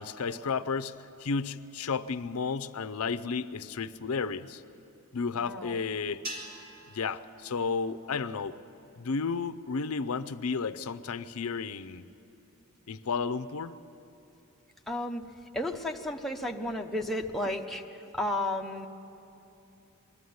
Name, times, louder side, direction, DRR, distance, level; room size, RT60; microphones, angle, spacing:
voice 1, 0.0-4.6 5.1-6.2 6.9-8.5 9.0-12.0 12.9-13.8, left 5 dB, 70° left, 13 dB, 0.6 m, -32 dB
voice 2, 5.3-5.8 14.9-15.3 15.5-17.8 18.1-18.9, left 1 dB, ahead, 1 dB, 0.7 m, -33 dB
sound 1, 6.2-8.7, right 1 dB, 40° right, 2.2 m, -45 dB
21.5 x 13.0 x 9.4 m, 2.9 s
head